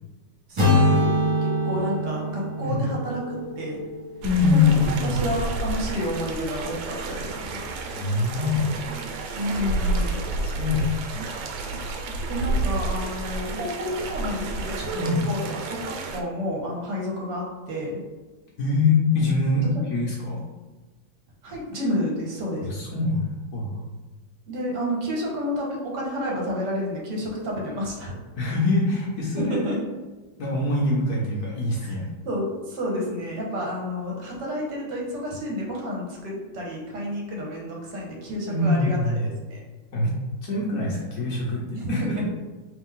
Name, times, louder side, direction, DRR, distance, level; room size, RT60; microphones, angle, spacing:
voice 1, 0.5-1.1 1.4-3.8 4.5-7.7 9.3-10.2 12.3-15.0 15.2-15.4 15.7-15.8 16.1-18.0 21.4-22.7 24.5-28.1 29.4-29.8 31.9-32.0 32.2-39.6 41.7-41.9, equal, 65° right, -2 dB, 1.4 m, -30 dB
sound 1, 0.6-4.6, left 1 dB, 35° right, 0.5 m, -24 dB
voice 2, 4.2-5.2 7.9-8.7 10.3-11.2 14.9-15.2 18.6-20.4 22.6-23.3 23.5-23.8 28.4-29.7 30.4-32.1 38.5-39.3 39.9-40.1 40.4-42.2, left 3 dB, 60° left, -4 dB, 1.1 m, -24 dB
sound 2, 4.2-16.2, right 2 dB, 85° right, 1.3 m, -30 dB
3.2 x 3.2 x 3.6 m, 1.2 s
omnidirectional pair, 2.1 m